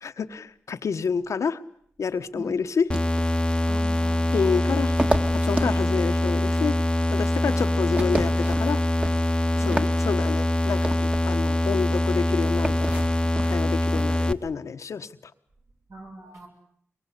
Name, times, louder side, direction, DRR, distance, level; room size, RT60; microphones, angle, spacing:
voice 1, 0.0-1.6 2.0-2.9 4.3-4.9 5.3-6.8 7.1-8.8 9.5-13.1 13.4-15.3, left 5 dB, 85° left, 8 dB, 1.2 m, -28 dB
sound 1, 2.9-14.3, left 1 dB, 15° left, 1.0 m, -24 dB
sound 2, 2.9-14.5, right 1 dB, 25° right, 1.8 m, -33 dB
voice 2, 3.7-4.3 5.8-5.9 7.4-7.7 9.6-9.7 15.9-16.5, right 2 dB, 70° right, 1 dB, 7.3 m, -41 dB
24.0 x 23.0 x 8.4 m, 0.67 s
wide cardioid pair, 85°, 5 cm